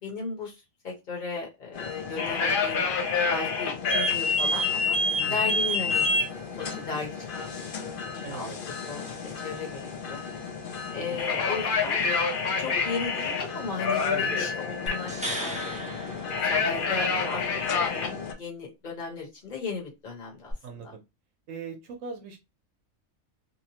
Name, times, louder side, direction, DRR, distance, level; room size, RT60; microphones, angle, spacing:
voice 1, 0.0-2.8 3.3-5.0 5.3-6.1 6.6-8.5 8.9-10.2 10.9-12.0 12.6-15.6 16.5-17.4 17.7-20.5 20.8-20.9, left 4 dB, 40° left, -1 dB, 1.1 m, -36 dB
sound 1, 1.7-18.3, left 4 dB, 55° left, 0.6 m, -28 dB
voice 2, 5.2-5.6 8.2-8.6 11.0-11.2 11.4-11.5 14.1-14.5 20.6-21.0 21.5-22.4, right 5 dB, 75° right, 3 dB, 0.9 m, -40 dB
sound 2, 14.9-17.1 20.5-20.6, equal, 10° right, 0.4 m, -36 dB
2.9 x 2.0 x 2.8 m, 0.24 s
omnidirectional pair, 1.4 m